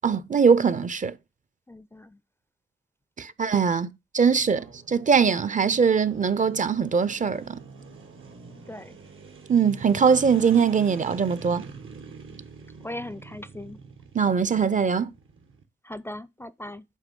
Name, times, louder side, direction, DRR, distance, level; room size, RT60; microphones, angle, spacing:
voice 1, 0.0-1.2 3.2-7.6 9.5-11.6 14.1-15.1, right 6 dB, 40° right, 0.5 m, -22 dB
voice 2, 1.7-2.2 8.7-8.9 12.8-13.8 15.9-16.8, left 1 dB, 10° left, 0.4 m, -38 dB
sound 1, 4.3-15.6, right 5 dB, 85° right, 1.4 m, -45 dB
8.4 x 3.0 x 5.2 m
cardioid pair, 65°, 20 cm